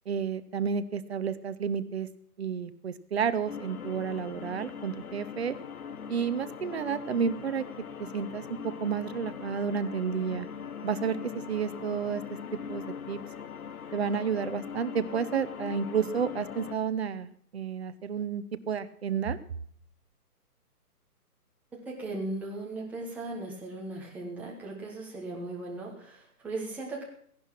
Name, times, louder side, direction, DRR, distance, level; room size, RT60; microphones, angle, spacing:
voice 1, 0.1-2.1 2.4-5.5 6.1-7.6 8.1-10.5 10.8-12.2 12.7-13.2 13.9-19.4, right 6 dB, 45° right, 12 dB, 0.9 m, -31 dB
sound 1, 3.5-16.7, left 7 dB, 65° left, 1.1 m, -41 dB
voice 2, 21.7-27.0, right 2 dB, 5° right, -3 dB, 1.2 m, -37 dB
16.5 x 11.0 x 5.9 m, 0.65 s
hypercardioid pair, 165°, 46 cm